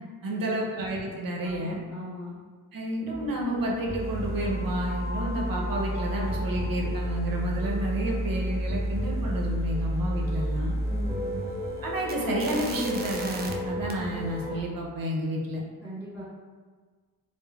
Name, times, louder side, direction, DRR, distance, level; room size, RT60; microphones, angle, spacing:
voice 1, 0.2-1.8 2.7-10.7 11.8-15.6, right 1 dB, 50° right, -1 dB, 0.7 m, -30 dB
voice 2, 1.4-2.4 10.8-11.5 15.8-16.2, equal, 5° right, -13 dB, 1.5 m, -40 dB
sound 1, 3.1-14.6, equal, 20° left, 0.6 m, -31 dB
sound 2, 4.0-13.5 13.9-14.5, right 3 dB, 25° right, 0.4 m, -46 dB
3.2 x 2.0 x 2.3 m, 1.5 s
cardioid pair, 60°, 43 cm